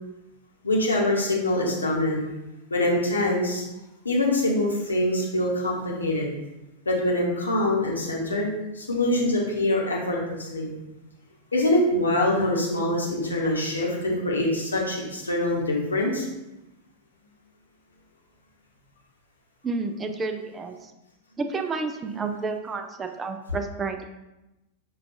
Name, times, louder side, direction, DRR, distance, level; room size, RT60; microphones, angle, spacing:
voice 1, 0.6-2.2 2.7-3.6 4.0-6.3 6.9-8.5 8.7-10.7 11.5-16.3, left 1 dB, 75° left, -2 dB, 0.9 m, -24 dB
voice 2, 19.6-20.9 21.4-24.1, right 4 dB, 20° right, 6 dB, 0.3 m, -30 dB
5.6 x 2.3 x 2.5 m, 0.98 s
figure-of-eight pair, 90°, 0 cm